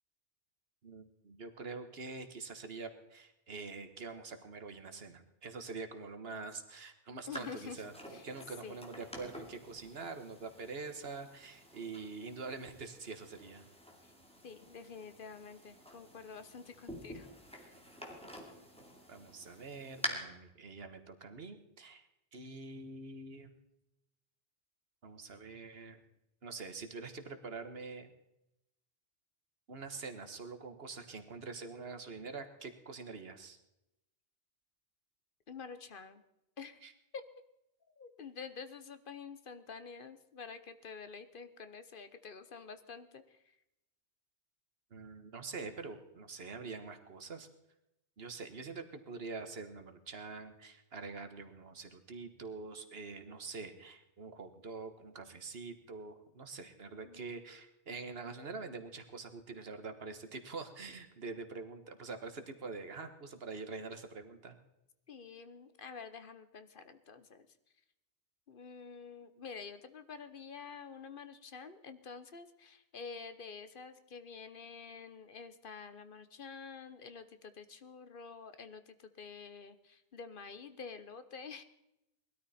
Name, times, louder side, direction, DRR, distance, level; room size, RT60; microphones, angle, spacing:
voice 1, 0.8-7.9 8.2-13.6 19.1-23.5 25.0-26.0 26.4-28.1 29.7-33.6 36.8-36.9 44.9-47.5 48.2-64.6, right 4 dB, 75° right, 9 dB, 1.6 m, -45 dB
voice 2, 7.3-7.8 8.1-8.3 8.6-8.8 14.4-17.3 17.6-17.7 35.5-36.2 36.6-36.8 37.1-37.2 38.0-43.6 57.0-57.4 65.1-67.5 68.5-81.6, left 5 dB, 60° left, 11 dB, 1.1 m, -48 dB
sound 1, 7.3-20.1, equal, 5° left, 2.4 m, -48 dB
20.0 x 13.0 x 4.3 m, 0.86 s
omnidirectional pair, 1.0 m